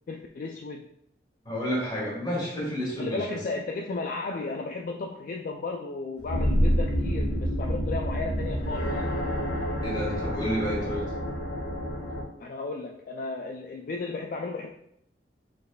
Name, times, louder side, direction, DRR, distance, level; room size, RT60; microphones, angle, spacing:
voice 1, 0.1-0.9 3.0-9.1 12.4-14.7, left 3 dB, 50° left, 2 dB, 0.3 m, -34 dB
voice 2, 1.4-3.4 9.8-11.1, equal, 25° left, -4 dB, 1.6 m, -30 dB
sound 1, 6.2-12.2, equal, 85° left, 1.4 m, -28 dB
5.2 x 4.0 x 2.3 m, 0.74 s
head